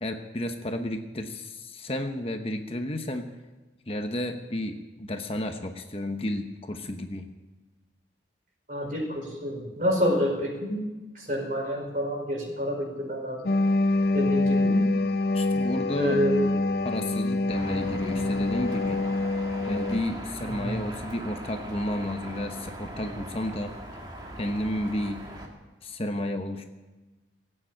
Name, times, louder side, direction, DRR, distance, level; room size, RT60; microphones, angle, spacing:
voice 1, 0.0-3.3 3.9-7.3 15.3-16.2 16.8-19.0 19.6-23.7 24.4-25.2 25.8-26.7, left 1 dB, 30° left, 5 dB, 1.0 m, -31 dB
voice 2, 8.7-10.8 11.1-13.6 14.1-14.8 15.9-16.5 20.4-20.8, equal, 45° right, -1 dB, 5.1 m, -28 dB
sound 1, 13.5-20.0, left 2 dB, 55° left, 0.6 m, -26 dB
sound 2, 17.5-25.5, right 1 dB, 25° right, 2.1 m, -40 dB
18.0 x 8.9 x 8.9 m, 1.2 s
head